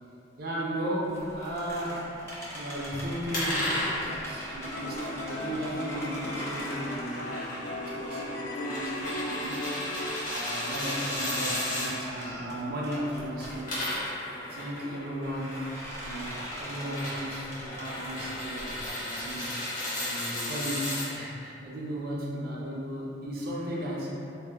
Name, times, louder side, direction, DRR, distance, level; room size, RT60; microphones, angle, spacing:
voice 1, 0.4-2.0 2.5-3.8 4.1-7.5 8.0-9.7 10.3-13.8 14.4-15.6 16.0-24.1, right 1 dB, 60° right, -5 dB, 0.5 m, -35 dB
sound 1, 1.0-8.3 8.8-14.1 15.2-18.9, equal, 15° left, 0.5 m, -42 dB
sound 2, 3.3-11.9 13.4-21.1, left 1 dB, 50° left, 0.9 m, -35 dB
sound 3, 4.6-10.1, left 1 dB, 70° left, 0.3 m, -37 dB
2.7 x 2.0 x 3.3 m, 2.7 s
head